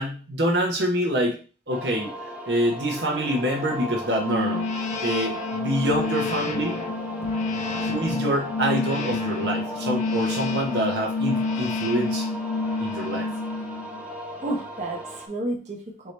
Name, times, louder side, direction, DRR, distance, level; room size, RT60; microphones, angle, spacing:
voice 1, 0.0-1.4 1.7-2.1 2.5-4.6 5.0-6.8 7.8-12.2 12.8-13.3, right 1 dB, 65° right, 0 dB, 0.8 m, -26 dB
sound 1, 1.7-15.3, equal, 10° right, 0.7 m, -36 dB
sound 2, 4.1-14.0, left 3 dB, 40° left, 0.5 m, -28 dB
voice 2, 14.4-16.1, right 1 dB, 40° right, -1 dB, 0.9 m, -31 dB
4.5 x 2.7 x 3.2 m, 0.36 s
head